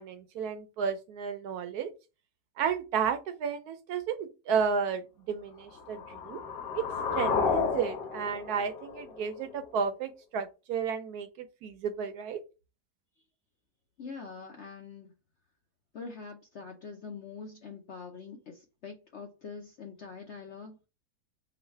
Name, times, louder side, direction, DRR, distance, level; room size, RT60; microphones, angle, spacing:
voice 1, 0.0-1.9 2.6-6.4 6.7-6.9 7.1-12.4, right 6 dB, 70° right, 1.0 m, -32 dB
sound 1, 5.7-9.7, left 5 dB, 80° left, 1.6 m, -32 dB
voice 2, 14.0-15.1 15.9-20.7, left 5 dB, 65° left, 0.7 m, -44 dB
3.9 x 2.2 x 4.3 m
omnidirectional pair, 1.9 m